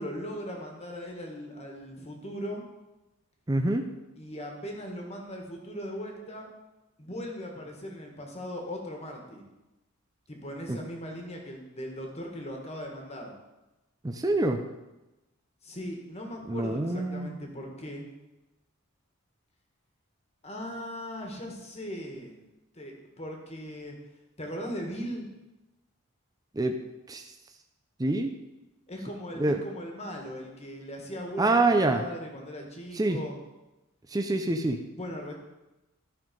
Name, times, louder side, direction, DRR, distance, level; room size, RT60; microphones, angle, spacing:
voice 1, 0.0-2.6 4.2-6.5 7.0-9.4 10.3-13.3 15.6-18.1 20.4-22.4 22.7-24.0 24.4-25.3 28.9-33.4 35.0-35.3, equal, 30° left, 1 dB, 1.7 m, -39 dB
voice 2, 3.5-3.8 10.7-10.8 14.0-14.6 16.5-17.3 26.6-26.7 27.1-27.2 28.0-28.3 29.4-29.6 31.4-32.0 33.0-33.2 34.1-34.8, right 2 dB, 15° right, 5 dB, 0.5 m, -25 dB
12.5 x 5.6 x 5.3 m, 1.0 s
head